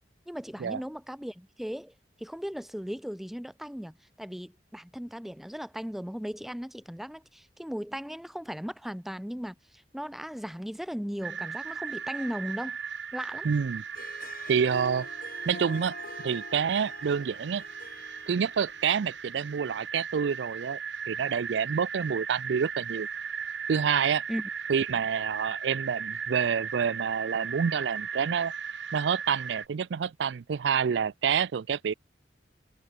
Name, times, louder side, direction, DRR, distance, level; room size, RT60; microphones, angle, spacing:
voice 1, 0.3-9.5 9.9-12.8 13.1-13.5 24.3-24.5, equal, ahead, 0.4 m, -37 dB
sound 1, 11.2-29.7, right 6 dB, 85° right, 2.4 m, -37 dB
voice 2, 13.4-13.8 14.5-15.1 15.5-16.0 16.2-17.6 18.3-20.8 21.1-23.1 23.7-24.2 24.7-28.5 28.9-31.9, right 7 dB, 70° right, 0.4 m, -28 dB
Harp, 13.8-19.3, left 2 dB, 55° left, 7.8 m, -46 dB
head